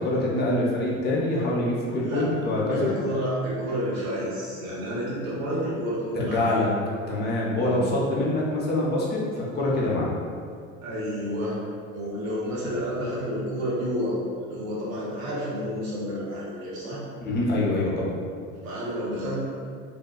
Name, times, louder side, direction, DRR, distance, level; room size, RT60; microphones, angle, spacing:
voice 1, 0.0-2.9 6.2-6.7 7.1-10.1 17.2-18.1, left 1 dB, 25° left, -5 dB, 0.6 m, -25 dB
voice 2, 2.7-6.6 7.6-7.8 10.8-11.6 11.9-17.0 18.6-19.4, equal, 85° right, -6 dB, 0.7 m, -30 dB
2.7 x 2.1 x 2.2 m, 2.2 s
hypercardioid pair, 80°, 39 cm